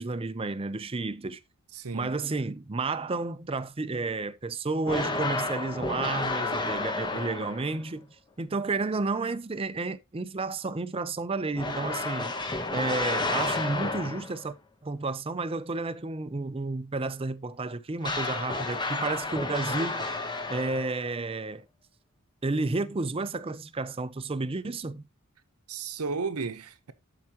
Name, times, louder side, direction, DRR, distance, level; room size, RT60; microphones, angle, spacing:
voice 1, 0.0-1.4 1.9-8.1 8.4-12.3 12.7-14.6 14.8-20.1 20.5-21.7 22.4-25.0, right 3 dB, 25° right, 0.5 m, -31 dB
voice 2, 1.7-2.1 25.7-26.9, right 4 dB, 85° right, 0.9 m, -33 dB
sound 1, 4.8-7.8 11.6-14.5 18.0-21.1, left 2 dB, 20° left, 1.1 m, -31 dB
12.0 x 4.7 x 2.9 m
head